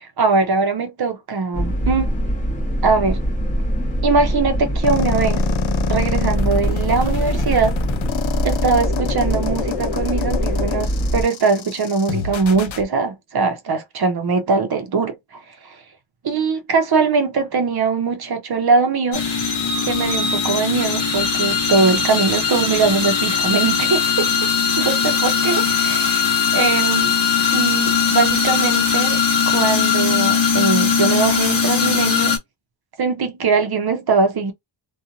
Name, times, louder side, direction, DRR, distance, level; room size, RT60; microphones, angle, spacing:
voice 1, 0.0-2.2 2.8-3.2 4.0-5.4 5.9-7.8 8.4-15.2 15.7-15.8 16.2-19.4 19.8-24.3 24.8-27.1 27.5-29.2 29.5-32.3 33.0-34.5, right 4 dB, 50° right, 0.8 m, -21 dB
sound 1, 1.5-11.2, equal, 15° left, 1.1 m, -23 dB
sound 2, 4.8-12.8, left 10 dB, 75° left, 0.5 m, -27 dB
sound 3, 19.1-32.4, left 6 dB, 45° left, 1.0 m, -19 dB
2.8 x 2.4 x 2.4 m
wide cardioid pair, 175°, 48 cm